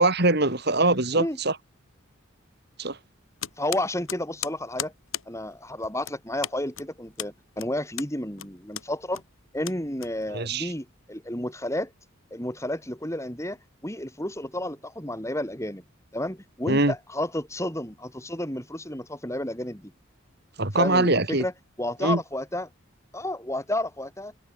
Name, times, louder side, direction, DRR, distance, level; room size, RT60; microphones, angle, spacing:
voice 1, 0.0-1.5 2.8-3.0 10.3-10.7 16.6-16.9 20.6-21.4 22.0-22.2, right 2 dB, 50° right, 3.1 m, -22 dB
sound 1, 3.4-10.6, left 11 dB, 85° left, 3.2 m, -38 dB
voice 2, 3.6-4.9 5.3-9.2 9.5-11.9 12.3-13.6 13.8-15.8 16.1-19.9 20.7-21.5 21.8-22.7 23.1-24.3, left 1 dB, 15° left, 6.8 m, -31 dB
head